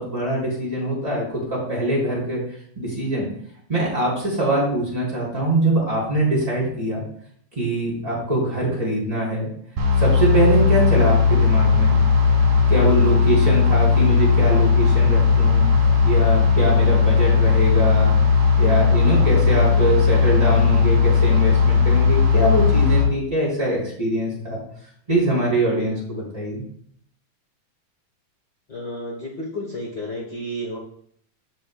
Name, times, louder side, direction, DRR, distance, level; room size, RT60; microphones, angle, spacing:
voice 1, 0.0-2.4 2.7-3.3 3.7-7.0 7.5-9.5 10.0-12.0 12.7-15.7 16.0-18.1 18.6-24.6 25.1-26.6, right 1 dB, 10° right, -5 dB, 3.4 m, -23 dB
sound 1, 9.8-23.1, left 5 dB, 80° right, 3.4 m, -17 dB
voice 2, 28.7-30.8, equal, 85° left, -1 dB, 0.9 m, -32 dB
14.0 x 5.2 x 2.3 m, 0.64 s
omnidirectional pair, 3.4 m